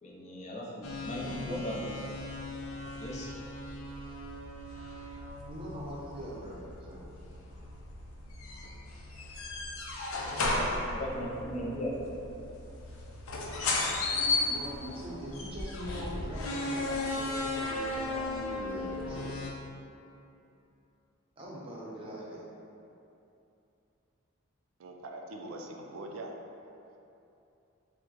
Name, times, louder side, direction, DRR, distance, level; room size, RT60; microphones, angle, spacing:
voice 1, 0.0-1.9 3.0-3.3 10.9-12.3, equal, 35° left, -4 dB, 0.5 m, -37 dB
sound 1, 0.8-19.5, left 2 dB, 85° left, 0.5 m, -36 dB
voice 2, 1.1-1.6 5.5-7.0 14.5-19.4 21.4-22.5, equal, 25° right, -5 dB, 0.6 m, -42 dB
voice 3, 24.8-26.4, right 2 dB, 85° right, 2 dB, 0.4 m, -42 dB
5.9 x 2.1 x 2.9 m, 2.8 s
head